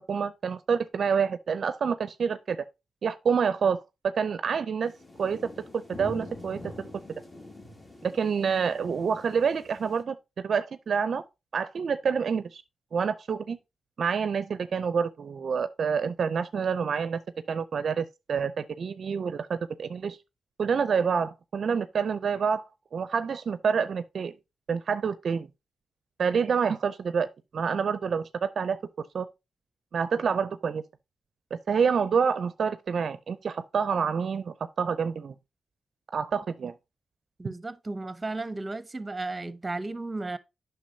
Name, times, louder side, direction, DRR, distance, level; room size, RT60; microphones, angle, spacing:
voice 1, 0.1-2.6 3.0-3.8 4.0-4.9 5.2-5.4 5.9-6.9 8.0-10.2 10.4-11.2 11.5-12.6 12.9-13.6 14.0-17.2 17.5-20.2 20.6-22.6 22.9-24.3 24.7-25.5 26.2-27.3 27.5-28.8 29.1-29.3 29.9-30.8 31.5-35.3 36.1-36.7 37.4-37.5, right 6 dB, 65° right, 0.4 m, -27 dB
sound 1, 4.8-10.0, left 2 dB, 30° left, 1.8 m, -45 dB
voice 2, 37.4-40.4, right 2 dB, 30° right, 0.7 m, -34 dB
8.4 x 5.8 x 2.6 m
cardioid pair, 55°, 0 cm